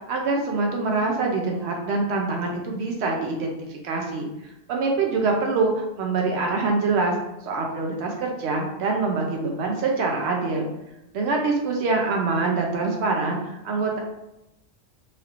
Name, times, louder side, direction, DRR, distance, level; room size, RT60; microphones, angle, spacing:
voice 1, 0.1-4.3 4.7-7.1 7.4-10.7 11.1-14.0, right 3 dB, 85° right, 1 dB, 0.8 m, -25 dB
3.3 x 2.4 x 2.8 m, 0.90 s
omnidirectional pair, 1.1 m